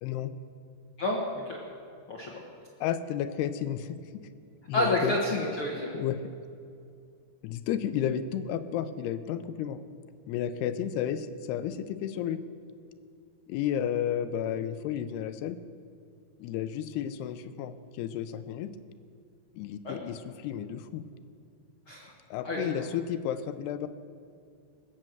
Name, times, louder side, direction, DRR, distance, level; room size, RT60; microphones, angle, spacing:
voice 1, 0.0-0.3 2.8-4.0 4.7-5.1 5.9-6.2 7.4-9.8 10.3-12.4 13.5-15.6 16.4-18.7 19.6-21.0 22.3-23.9, left 10 dB, 85° left, 12 dB, 2.8 m, -32 dB
voice 2, 1.0-1.6 2.1-2.4 4.7-6.0 19.8-20.0 21.9-22.1 22.4-22.7, left 1 dB, 65° left, -2 dB, 1.3 m, -29 dB
20.0 x 7.5 x 7.8 m, 2.4 s
omnidirectional pair, 4.6 m